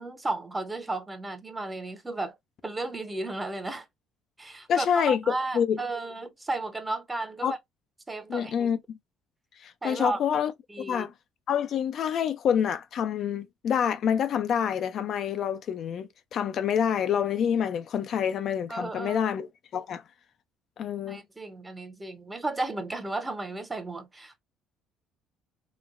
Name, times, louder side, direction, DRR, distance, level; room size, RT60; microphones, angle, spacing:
voice 1, 0.0-2.4 2.6-3.9 4.4-7.6 8.1-8.7 9.8-10.2 10.7-11.1 18.7-19.3 21.1-24.4, right 2 dB, 15° right, 0.7 m, -34 dB
voice 2, 4.7-5.8 7.4-7.5 8.3-9.0 9.6-10.5 10.9-11.1 11.5-20.0 20.8-21.2, left 8 dB, 55° left, 0.3 m, -27 dB
3.0 x 2.0 x 2.4 m
supercardioid pair, 85°, 0 cm